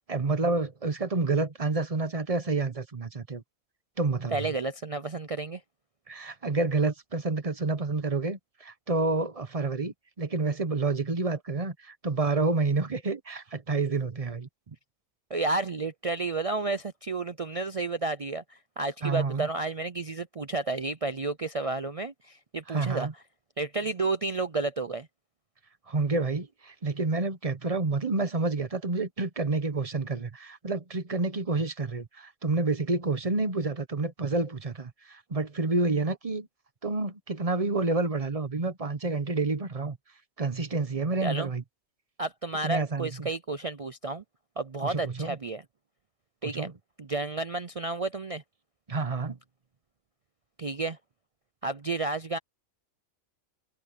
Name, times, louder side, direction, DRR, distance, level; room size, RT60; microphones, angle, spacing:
voice 1, 0.1-3.4 4.0-4.5 6.1-14.5 19.0-19.5 22.7-23.1 25.9-36.5 36.8-40.0 40.4-41.6 42.6-43.3 44.8-45.4 46.4-46.7 48.9-49.4, right 3 dB, 30° right, 1.1 m, -29 dB
voice 2, 4.3-5.6 14.7-14.8 15.3-23.1 23.6-25.1 41.2-41.5 42.2-44.2 44.6-45.6 46.4-46.7 47.0-48.4 50.6-51.0 51.6-52.4, right 3 dB, 55° right, 0.3 m, -31 dB
omnidirectional pair, 1.4 m